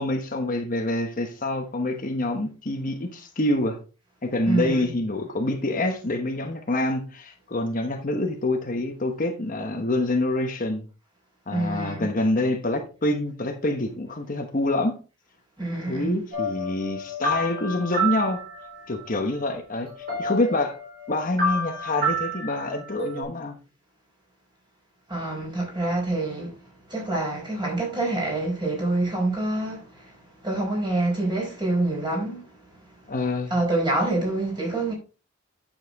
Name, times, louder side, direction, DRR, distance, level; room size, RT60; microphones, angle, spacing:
voice 1, 0.0-3.8 4.2-10.9 11.5-15.0 15.9-18.4 18.9-20.8 21.1-23.6 33.1-33.5, left 2 dB, 40° left, 1.1 m, -26 dB
voice 2, 4.4-4.9 11.5-12.1 15.6-16.2 25.1-33.1 33.5-34.9, right 2 dB, 20° right, 4.7 m, -27 dB
sound 1, 16.3-19.1 19.5-19.6 19.9-23.2, right 1 dB, 45° right, 3.8 m, -30 dB
9.6 x 7.3 x 3.6 m
head